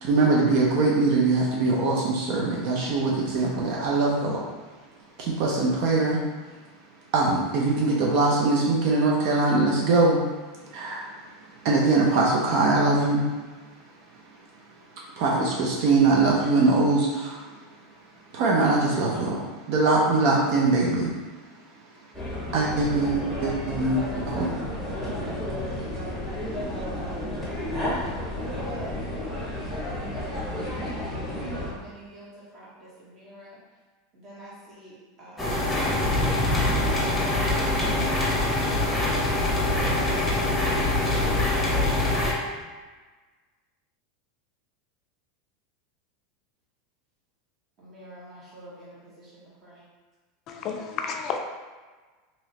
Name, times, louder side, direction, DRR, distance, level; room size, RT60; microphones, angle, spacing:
voice 1, 0.0-4.4 5.2-6.2 7.1-10.2 10.7-11.1 11.6-13.2 15.2-17.4 18.3-19.4 19.7-21.1 22.5-24.5 25.0-25.1, right 3 dB, 60° right, -3 dB, 0.6 m, -22 dB
sound 1, 22.1-31.7, left 1 dB, 15° right, 1.5 m, -32 dB
voice 2, 26.8-28.9 30.6-33.6 34.2-35.5 36.7-39.3 39.8-40.7 47.8-49.8, right 1 dB, 40° right, -7 dB, 1.5 m, -46 dB
sound 2, 35.4-42.3, left 2 dB, 5° left, 0.9 m, -24 dB
voice 3, 50.5-51.4, left 6 dB, 45° left, 4 dB, 0.4 m, -31 dB
2.9 x 2.9 x 2.9 m, 1.3 s
hypercardioid pair, 100°, 0 cm